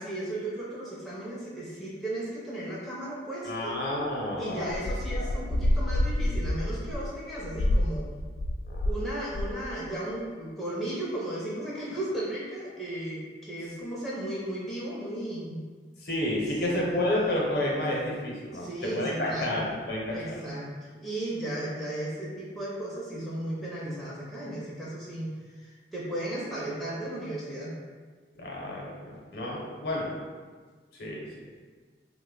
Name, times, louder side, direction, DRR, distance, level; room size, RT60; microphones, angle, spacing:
voice 1, 0.0-3.8 4.4-8.1 8.8-15.6 16.7-16.8 18.5-19.6 20.1-27.8, right 1 dB, ahead, -7 dB, 0.5 m, -35 dB
voice 2, 3.4-4.8 5.1-5.3 8.7-8.8 16.0-20.3 28.4-30.1 31.0-31.2, left 1 dB, 60° left, -4 dB, 0.7 m, -30 dB
sound 1, 4.7-9.0 9.3-9.7, left 1 dB, 85° left, 0.3 m, -28 dB
3.0 x 2.1 x 3.6 m, 1.5 s
head